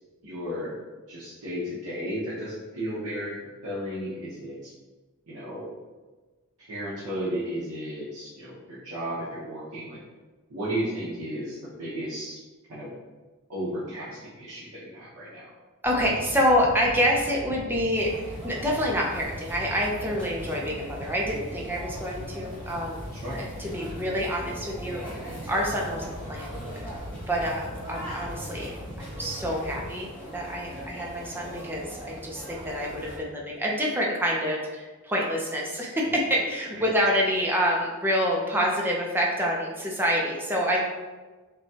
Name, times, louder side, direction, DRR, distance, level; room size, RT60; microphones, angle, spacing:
voice 1, 0.2-0.7 1.1-3.4 3.6-4.7 5.3-5.8 6.6-10.0 10.5-12.4 12.7-12.9 13.5-15.5 23.1-23.4 30.7-30.8 36.8-36.9, equal, 80° right, -10 dB, 0.9 m, -34 dB
voice 2, 15.8-18.1 18.4-23.0 23.3-25.0 25.5-26.5 26.7-26.9 27.3-28.7 29.0-40.8, equal, 10° right, -2 dB, 0.6 m, -27 dB
sound 1, 15.8-29.9, equal, 40° right, 1.0 m, -41 dB
sound 2, 18.0-33.2, right 1 dB, 5° left, 1.3 m, -41 dB
5.7 x 2.3 x 2.7 m, 1.3 s
head